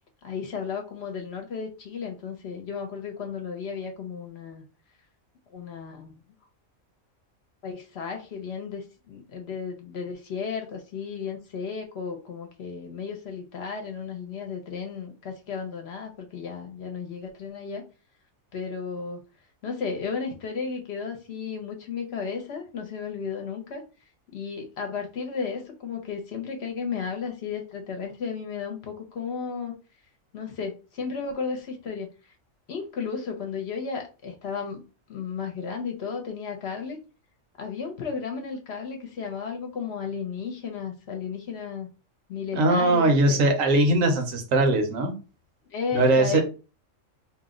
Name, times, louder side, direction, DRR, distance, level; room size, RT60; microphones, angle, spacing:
voice 1, 0.2-4.6 5.5-6.2 7.6-17.8 18.5-19.2 19.6-23.8 24.3-29.7 30.3-32.1 32.7-34.8 35.1-37.0 37.6-41.9 42.3-43.4 45.7-46.4, left 5 dB, 60° left, 3 dB, 0.8 m, -34 dB
voice 2, 42.5-45.1 45.9-46.4, right 2 dB, 80° right, 4 dB, 1.1 m, -20 dB
2.7 x 2.0 x 3.6 m, 0.32 s
omnidirectional pair, 1.4 m